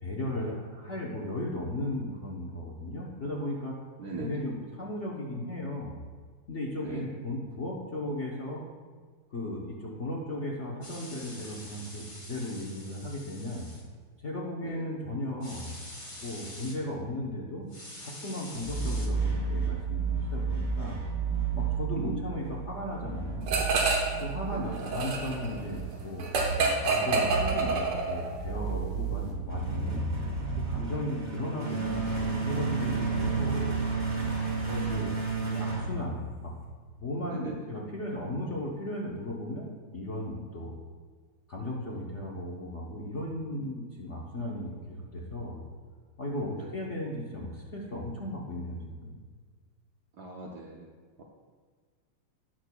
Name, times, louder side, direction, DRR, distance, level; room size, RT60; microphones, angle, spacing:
voice 1, 0.0-3.8 4.2-6.0 6.5-8.7 9.3-13.7 14.2-15.7 16.2-17.7 18.0-21.0 21.5-23.6 24.2-26.3 26.8-30.1 30.6-33.8 34.7-35.1 35.4-36.5 37.0-40.7 41.5-45.6 46.2-49.2, left 1 dB, 50° left, -3 dB, 0.9 m, -36 dB
voice 2, 4.0-4.4 6.8-7.1 14.6-14.8 21.9-22.3 24.5-24.8 37.3-37.7 46.6-46.7 50.2-50.9, right 2 dB, 60° right, -1 dB, 1.0 m, -40 dB
sound 1, 10.8-13.8 15.4-16.8 17.7-19.1, left 1 dB, 20° left, 1.0 m, -45 dB
sound 2, 18.6-36.7, right 4 dB, 35° right, 1.2 m, -32 dB
sound 3, 23.5-24.2 24.5-28.3, right 3 dB, 85° right, 2.2 m, -28 dB
17.5 x 6.5 x 2.2 m, 1.5 s
omnidirectional pair, 2.4 m